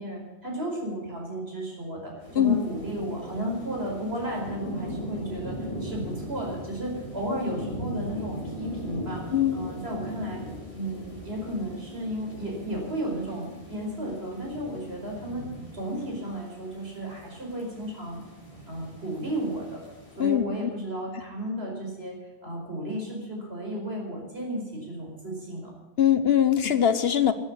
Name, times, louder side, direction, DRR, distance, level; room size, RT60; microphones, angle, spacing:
voice 1, 0.0-9.2 9.5-10.4 10.7-15.5 15.7-18.2 18.7-19.8 20.2-25.7, right 1 dB, 60° right, -1 dB, 5.2 m, -34 dB
sound 1, 2.2-20.3, equal, 30° left, 5.0 m, -39 dB
voice 2, 20.2-20.7 26.0-27.3, left 9 dB, 65° left, 12 dB, 1.1 m, -22 dB
13.0 x 9.9 x 9.8 m, 1.1 s
omnidirectional pair, 1.2 m